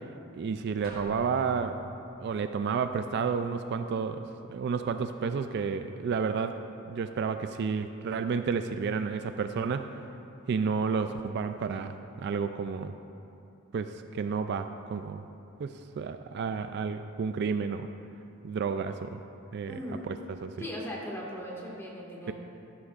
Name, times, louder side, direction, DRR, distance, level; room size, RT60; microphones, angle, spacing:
voice 1, 0.3-1.8 2.2-6.6 6.9-9.9 10.5-13.0 13.7-15.2 15.6-17.9 18.4-19.2 19.5-20.5, right 5 dB, 50° right, 8 dB, 0.3 m, -31 dB
sound 1, 0.8-2.3, equal, 25° right, 2.0 m, -45 dB
voice 2, 19.7-20.1 20.6-22.3, equal, 10° left, -4 dB, 1.8 m, -38 dB
13.0 x 11.5 x 2.5 m, 2.8 s
head